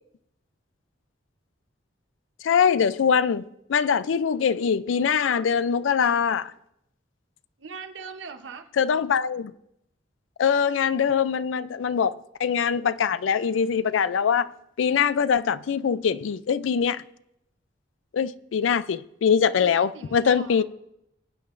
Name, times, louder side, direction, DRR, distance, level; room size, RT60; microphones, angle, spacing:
voice 1, 2.4-6.5 8.8-9.5 10.4-14.5 14.8-17.0 18.1-20.6, left 7 dB, 90° left, 0.4 m, -23 dB
voice 2, 7.6-8.7 19.6-20.6, right 5 dB, 80° right, 0.8 m, -41 dB
21.5 x 8.9 x 2.5 m
head